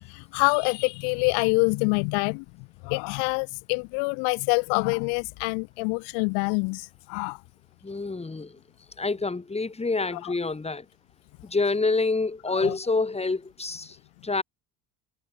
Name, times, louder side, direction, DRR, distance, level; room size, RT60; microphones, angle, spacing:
voice 1, 0.1-2.4 2.8-7.4 10.1-10.3 12.5-12.7, left 39 dB, 85° left, 1.3 m, -26 dB
voice 2, 7.8-8.5 9.0-10.8 11.4-14.0 14.2-14.4, left 3 dB, 15° left, 5.6 m, -27 dB
cardioid pair, 110°, 40 cm